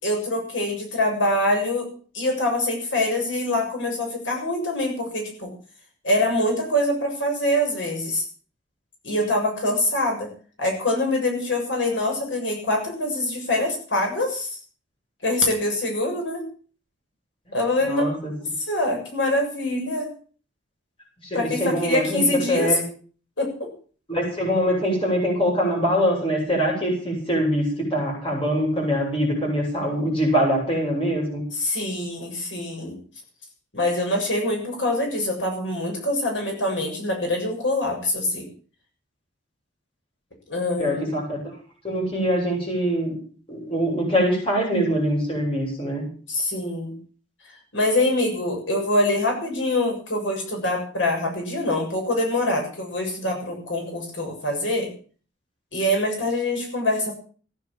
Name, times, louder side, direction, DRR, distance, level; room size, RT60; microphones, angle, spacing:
voice 1, 0.0-1.9 2.1-5.5 6.0-8.2 9.0-10.3 10.6-14.6 15.2-16.4 17.5-18.0 18.6-20.1 21.3-22.8 23.4-23.7 31.5-33.0 33.7-38.5 40.5-41.0 46.3-46.9 47.7-54.9 55.7-57.1, left 1 dB, 80° left, 1 dB, 7.2 m, -24 dB
voice 2, 17.9-18.3 21.3-22.8 24.1-31.4 40.8-41.4 41.8-43.1 43.5-46.1, equal, 30° left, 0 dB, 7.9 m, -23 dB
15.5 x 11.5 x 7.5 m, 0.42 s
head